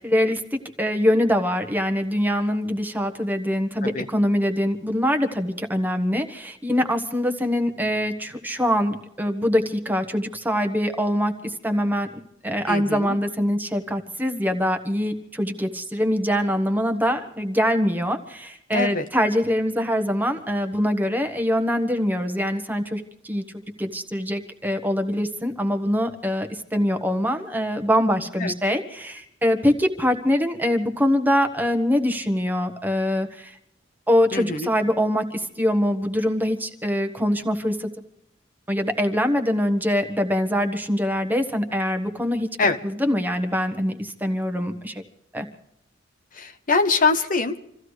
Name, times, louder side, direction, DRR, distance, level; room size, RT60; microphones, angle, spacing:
voice 1, 0.0-12.1 12.4-23.4 23.8-33.5 34.1-37.9 38.7-42.5 42.8-45.0 45.3-45.4, equal, 10° right, 6 dB, 1.3 m, -23 dB
voice 2, 12.7-13.2 18.7-19.0 28.4-28.5 34.3-34.7 42.6-42.8 46.3-47.7, left 4 dB, 45° left, 8 dB, 1.0 m, -23 dB
28.0 x 15.0 x 3.2 m, 0.77 s
head